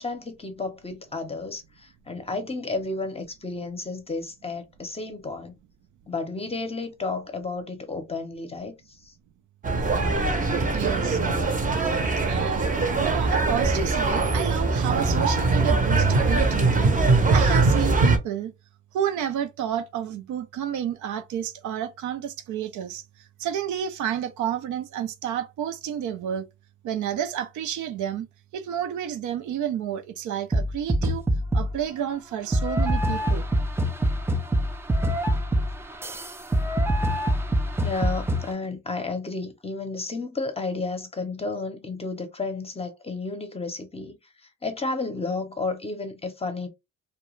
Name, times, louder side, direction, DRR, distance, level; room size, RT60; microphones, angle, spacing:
voice 1, 0.0-5.6 6.1-8.7 9.1-9.2 37.8-44.2 44.6-46.7, left 3 dB, 20° left, 0.7 m, -32 dB
sound 1, 9.6-18.2, right 3 dB, 25° right, 0.7 m, -22 dB
voice 2, 10.7-11.2 12.2-18.5 18.9-26.5 26.8-28.3 28.5-31.3 31.5-33.4, right 9 dB, 75° right, 0.5 m, -30 dB
sound 2, 30.5-31.8 32.5-38.5, equal, 10° right, 0.3 m, -25 dB
2.3 x 2.2 x 3.0 m
cardioid pair, 90°, 30 cm